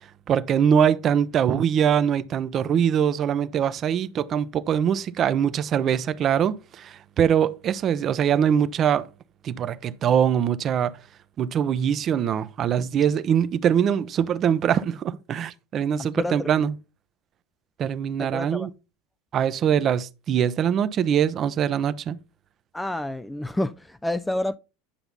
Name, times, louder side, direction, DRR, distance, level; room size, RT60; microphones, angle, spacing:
voice 1, 0.3-9.1 9.4-11.0 11.4-16.7 17.8-18.7 19.3-22.2, right 8 dB, 40° right, 0.7 m, -23 dB
voice 2, 16.0-16.5 18.2-18.7 22.7-24.6, left 1 dB, 5° left, 0.5 m, -29 dB
10.0 x 5.7 x 4.0 m
hypercardioid pair, 85°, 0 cm